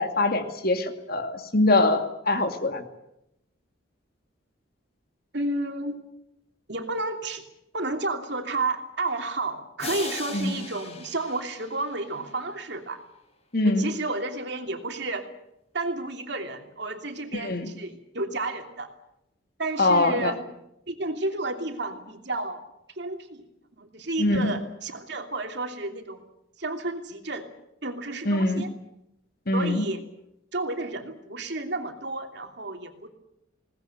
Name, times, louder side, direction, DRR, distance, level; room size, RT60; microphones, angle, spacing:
voice 1, 0.0-2.8 10.3-10.6 13.5-13.9 17.3-17.7 19.8-20.3 24.2-24.6 28.3-28.6 29.5-29.8, left 2 dB, 50° left, 7 dB, 2.4 m, -23 dB
voice 2, 5.3-6.0 6.7-7.4 7.7-13.0 13.6-15.3 15.7-18.9 19.6-20.4 20.9-22.6 23.0-23.4 23.8-26.2 26.6-27.5 27.8-28.7 29.5-30.0 30.5-33.1, right 2 dB, 60° right, 5 dB, 3.0 m, -31 dB
sound 1, 9.8-12.7, left 3 dB, 35° left, 6.0 m, -39 dB
21.5 x 19.0 x 9.2 m, 0.83 s
head